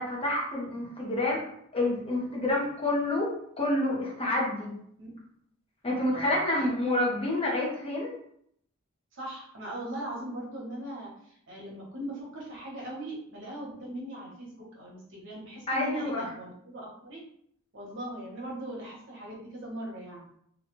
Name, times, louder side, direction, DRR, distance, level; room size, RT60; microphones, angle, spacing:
voice 1, 0.0-1.4 1.7-4.7 5.8-8.2 15.7-16.3, left 1 dB, 25° left, -3 dB, 0.7 m, -28 dB
voice 2, 6.1-6.7 9.1-17.2 17.7-20.3, right 1 dB, 60° right, -3 dB, 0.9 m, -40 dB
2.7 x 2.3 x 3.0 m, 0.69 s
head